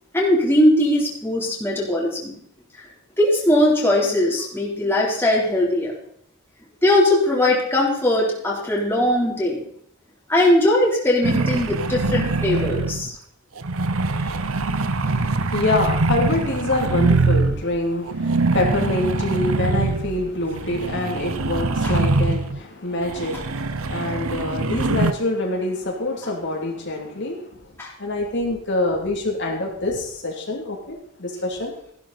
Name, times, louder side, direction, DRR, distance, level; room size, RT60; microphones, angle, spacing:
voice 1, 0.1-2.4 3.2-5.9 6.8-9.6 10.3-13.1 21.8-21.9 27.8-27.9, left 1 dB, 10° left, -4 dB, 3.7 m, -20 dB
sound 1, 11.2-13.1 13.6-17.6 18.1-22.6 23.0-25.1, right 3 dB, 75° right, 0.9 m, -23 dB
voice 2, 15.0-27.4 28.0-31.7, left 2 dB, 60° left, 0 dB, 2.9 m, -26 dB
15.0 x 11.5 x 4.2 m, 0.67 s
head